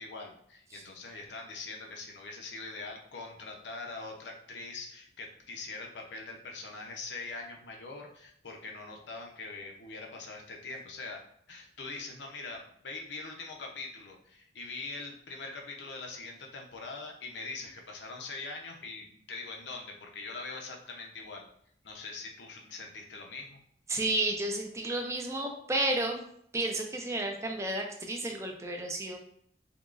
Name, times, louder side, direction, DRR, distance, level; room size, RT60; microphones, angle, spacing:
voice 1, 0.0-11.2 11.5-21.5 21.8-23.6, left 3 dB, 90° left, 1 dB, 0.7 m, -43 dB
voice 2, 23.9-26.2 26.5-29.2, right 2 dB, 15° right, 2 dB, 0.5 m, -32 dB
3.5 x 2.9 x 2.5 m, 0.68 s
head